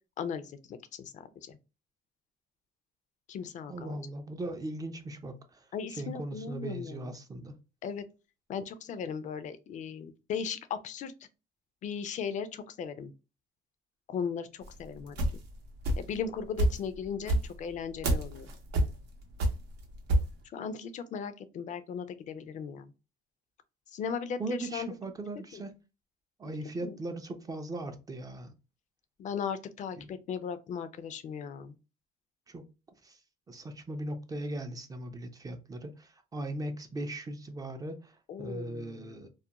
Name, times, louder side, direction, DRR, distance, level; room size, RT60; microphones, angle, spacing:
voice 1, 0.2-1.6 3.3-4.0 5.7-7.1 7.8-8.0 8.5-11.1 11.8-13.1 14.1-15.2 16.0-18.5 20.5-22.9 23.9-24.9 25.5-25.6 26.8-27.0 29.2-31.7 38.3-39.3, left 6 dB, 45° left, 0.4 m, -37 dB
voice 2, 3.7-5.7 6.0-7.6 24.4-25.7 26.4-28.5 30.0-30.1 32.5-32.6 33.0-33.2 33.5-39.3, right 2 dB, 20° right, 0.4 m, -39 dB
sound 1, 14.6-16.2 16.6-20.3, right 1 dB, 85° right, 0.7 m, -28 dB
2.3 x 2.1 x 2.8 m
cardioid pair, 110°, 17 cm